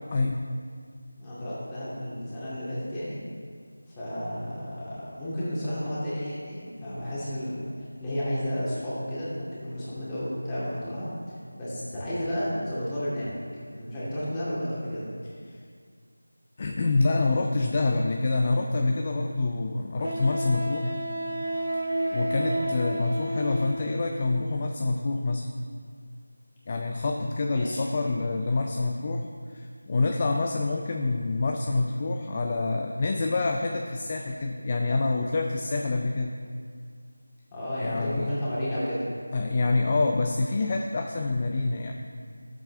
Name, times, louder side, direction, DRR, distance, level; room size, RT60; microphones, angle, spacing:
voice 1, 0.1-0.5 15.5-15.6 16.6-20.9 21.7-25.5 26.7-36.3 37.8-38.3 39.3-41.9, left 3 dB, 30° left, 3 dB, 0.5 m, -27 dB
voice 2, 1.2-3.2 3.9-13.3 13.7-15.1 22.4-22.7 27.5-27.8 37.5-39.1, equal, 10° left, -11 dB, 2.3 m, -32 dB
Wind instrument woodwind instrument, 18.7-18.8 20.0-24.1, right 1 dB, 80° right, 1.6 m, -31 dB
13.0 x 7.4 x 3.4 m, 2.1 s
figure-of-eight pair, 170°, 0 cm